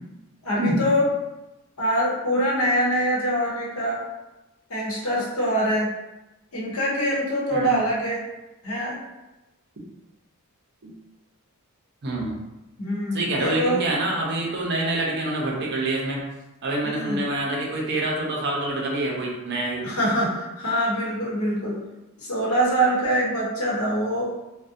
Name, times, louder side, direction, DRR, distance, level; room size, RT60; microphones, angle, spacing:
voice 1, 0.4-1.0 1.8-4.0 4.7-5.9 6.5-8.2 8.6-9.0 12.8-13.8 16.8-17.2 19.8-21.8 22.2-24.3, equal, 75° left, -5 dB, 0.9 m, -24 dB
voice 2, 12.0-12.3 13.1-16.2 16.6-19.9, right 2 dB, 50° right, -2 dB, 0.5 m, -26 dB
2.5 x 2.1 x 2.5 m, 0.98 s
head